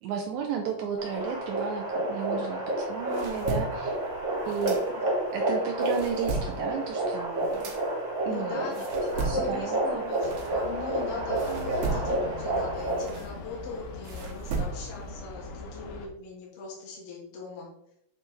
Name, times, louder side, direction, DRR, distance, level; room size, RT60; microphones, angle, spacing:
voice 1, 0.0-2.6 2.9-4.0 4.5-4.8 5.3-7.7 8.3-8.6 9.2-10.1, right 7 dB, 85° right, 3 dB, 1.7 m, -33 dB
sound 1, 1.0-13.1, right 1 dB, 40° right, 2.0 m, -30 dB
sound 2, 2.8-5.3 5.7-11.0 11.4-15.1, right 3 dB, 65° right, 2.0 m, -36 dB
voice 2, 8.3-17.7, left 4 dB, 50° left, -3 dB, 2.2 m, -39 dB
sound 3, 10.2-16.1, left 3 dB, 75° left, 2.4 m, -41 dB
7.4 x 4.4 x 3.3 m, 0.76 s
omnidirectional pair, 3.9 m